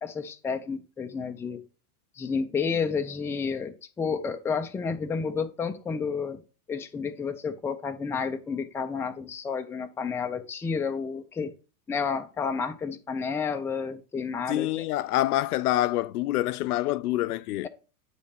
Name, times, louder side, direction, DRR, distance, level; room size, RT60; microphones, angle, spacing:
voice 1, 0.0-1.6 2.2-6.4 6.7-11.5 11.9-14.9, left 5 dB, 5° left, 0.4 m, -31 dB
voice 2, 14.5-17.7, left 15 dB, 85° left, 0.6 m, -26 dB
9.4 x 3.2 x 5.8 m
supercardioid pair, 125°, 44 cm